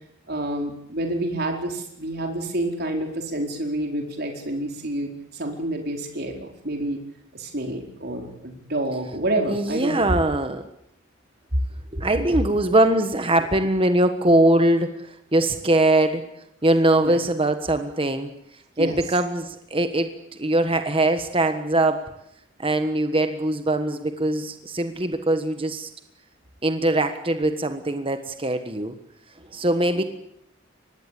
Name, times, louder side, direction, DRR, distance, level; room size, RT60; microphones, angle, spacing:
voice 1, 0.3-7.0 7.3-10.1 11.5-11.6 12.2-12.4 16.9-17.2 18.8-19.0 30.0-30.1, right 1 dB, 55° right, 3 dB, 4.6 m, -28 dB
voice 2, 9.5-10.6 11.9-14.9 15.3-16.2 16.6-18.3 18.8-20.1 20.4-22.1 22.6-25.9 26.6-28.9 29.5-30.0, right 1 dB, 25° right, 8 dB, 1.4 m, -21 dB
24.0 x 19.5 x 8.5 m, 0.75 s
head